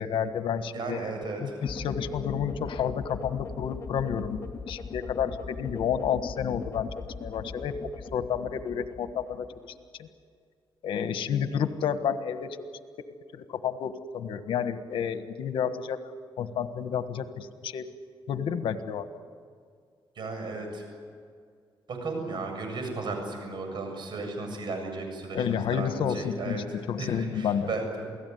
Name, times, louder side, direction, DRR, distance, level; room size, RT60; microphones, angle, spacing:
voice 1, 0.0-1.1 1.4-9.5 10.0-10.1 10.8-12.6 13.3-16.0 16.4-17.8 18.3-19.1 25.3-27.7, left 8 dB, 80° left, 10 dB, 1.5 m, -30 dB
voice 2, 0.7-1.5 20.2-20.8 21.9-25.4 25.7-26.6 27.0-28.2, right 3 dB, 60° right, 4 dB, 7.8 m, -34 dB
sound 1, 1.6-9.8, left 4 dB, 35° left, 1.7 m, -40 dB
28.0 x 17.5 x 9.6 m, 2.1 s
cardioid pair, 90°, 9 cm